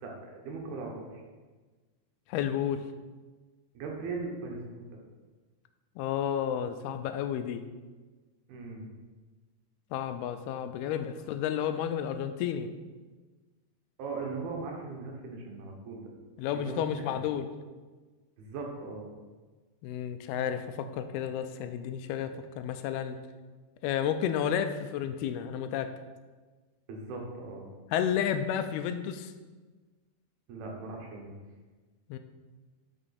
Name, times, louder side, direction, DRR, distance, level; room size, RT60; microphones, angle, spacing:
voice 1, 0.0-1.2 3.7-4.6 8.5-8.9 14.0-16.1 16.5-17.2 18.4-19.1 26.9-27.7 30.5-31.4, right 3 dB, 75° right, 0 dB, 3.1 m, -39 dB
voice 2, 2.3-2.8 6.0-7.6 9.9-12.7 16.4-17.5 19.8-22.3 22.6-23.2 23.8-25.9 27.9-29.3 32.1-32.2, left 9 dB, 85° left, 9 dB, 2.5 m, -31 dB
8.9 x 6.4 x 4.2 m, 1.3 s
omnidirectional pair, 4.6 m